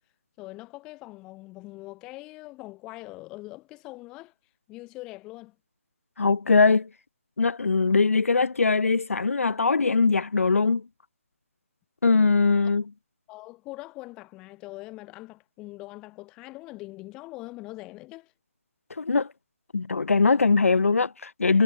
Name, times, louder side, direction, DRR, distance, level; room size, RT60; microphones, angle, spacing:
voice 1, 0.4-4.3 4.7-5.6 13.3-18.3, left 20 dB, 10° left, 3.8 m, -42 dB
voice 2, 6.2-6.9 7.4-10.8 12.0-12.8 19.0-19.3 19.7-21.6, left 4 dB, 80° left, 1.0 m, -21 dB
hypercardioid pair, 175°, 7 cm